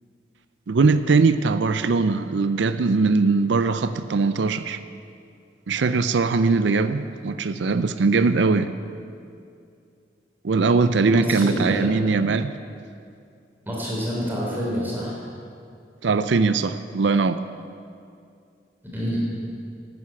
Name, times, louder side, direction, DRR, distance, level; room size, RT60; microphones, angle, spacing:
voice 1, 0.7-4.8 5.7-8.7 10.4-12.5 16.0-17.4, right 4 dB, 85° right, 12 dB, 0.5 m, -21 dB
voice 2, 11.1-12.0 13.7-15.2 18.9-19.2, equal, 10° right, -5 dB, 3.8 m, -27 dB
12.0 x 9.5 x 8.7 m, 2.4 s
head